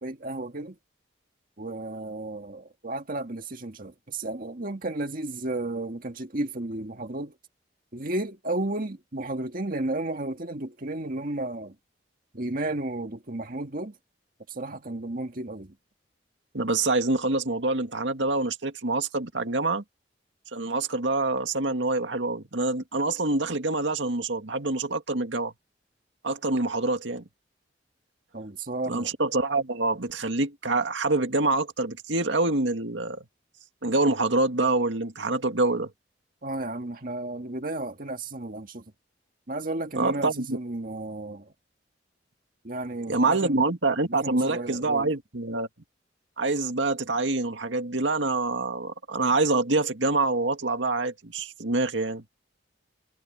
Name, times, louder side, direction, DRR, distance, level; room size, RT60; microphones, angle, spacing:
voice 1, 0.0-0.8 1.6-7.4 7.9-11.7 12.3-13.9 14.5-15.8 28.3-29.1 36.4-38.8 39.5-41.5 42.6-43.6 44.1-45.1, right 2 dB, 50° right, 1.9 m, -33 dB
voice 2, 16.5-19.8 20.5-25.5 26.2-27.2 28.9-33.2 33.8-35.9 40.0-40.6 43.1-45.7 46.4-52.2, right 2 dB, 80° right, 2.0 m, -26 dB
head